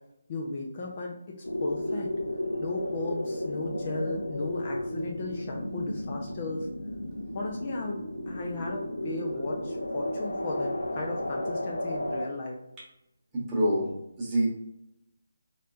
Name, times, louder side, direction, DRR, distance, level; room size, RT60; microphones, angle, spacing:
voice 1, 0.3-2.1 2.6-6.7 7.3-12.6, left 2 dB, 35° left, -1 dB, 0.5 m, -35 dB
sound 1, 1.4-12.3, left 1 dB, 75° left, 0.5 m, -33 dB
voice 2, 13.3-14.5, right 1 dB, 15° right, -7 dB, 1.2 m, -27 dB
4.3 x 3.1 x 2.5 m, 0.84 s
figure-of-eight pair, 150°, 0 cm